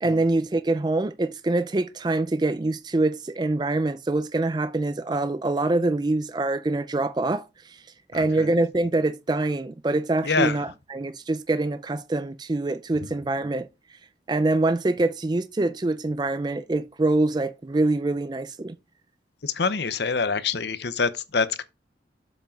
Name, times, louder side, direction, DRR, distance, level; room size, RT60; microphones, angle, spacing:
voice 1, 0.0-7.8 8.1-13.7 14.3-18.8, right 2 dB, 25° right, 0.4 m, -25 dB
voice 2, 8.1-8.5 10.2-10.6 19.4-21.6, left 4 dB, 65° left, 0.8 m, -26 dB
7.4 x 5.7 x 5.2 m
head